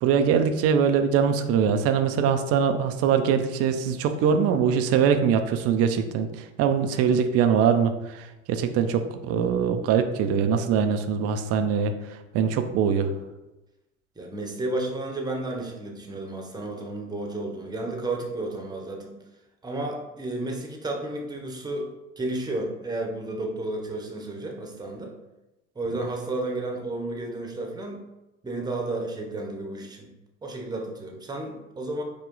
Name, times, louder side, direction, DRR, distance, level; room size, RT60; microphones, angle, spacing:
voice 1, 0.0-13.1, right 7 dB, 40° right, 8 dB, 0.5 m, -23 dB
voice 2, 14.2-19.2 19.6-25.1 25.7-28.0 28.4-30.1 30.4-32.0, right 2 dB, 10° right, 1 dB, 0.9 m, -32 dB
5.0 x 2.2 x 3.8 m, 0.99 s
hypercardioid pair, 75°, 38 cm